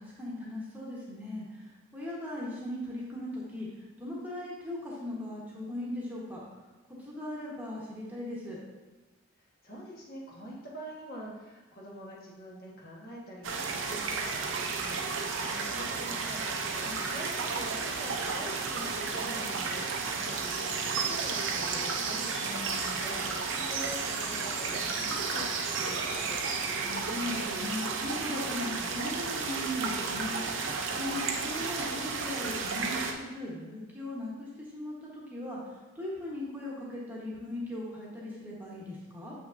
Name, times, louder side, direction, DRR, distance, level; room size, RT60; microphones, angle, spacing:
voice 1, 0.0-3.7 4.0-6.4 7.0-8.6 16.8-17.0 22.3-23.1 26.7-30.7 30.9-35.6 35.9-39.3, left 1 dB, 10° right, -6 dB, 1.1 m, -38 dB
voice 2, 9.4-16.4 16.7-22.2 23.0-26.4, equal, 45° left, -4 dB, 1.3 m, -45 dB
sound 1, 13.4-33.1, right 4 dB, 60° right, 0.6 m, -32 dB
7.1 x 5.9 x 2.6 m, 1.2 s
head